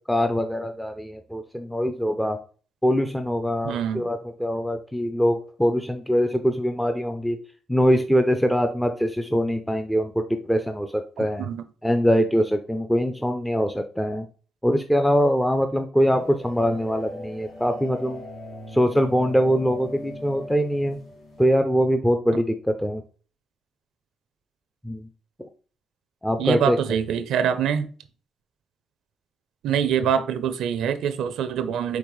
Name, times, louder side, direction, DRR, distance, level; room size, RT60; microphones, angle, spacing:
voice 1, 0.1-2.4 2.8-7.4 7.7-11.5 11.8-14.3 14.6-18.2 18.7-21.0 21.4-23.0 24.8-25.1 25.4-25.5 26.2-26.8, equal, 5° left, 0.4 m, -23 dB
voice 2, 3.6-4.1 11.4-11.6 26.4-27.9 29.6-32.0, right 8 dB, 80° right, 0.5 m, -24 dB
sound 1, 16.1-21.5, left 1 dB, 80° left, 1.7 m, -40 dB
5.2 x 3.2 x 3.1 m
cardioid pair, 90°, 0 cm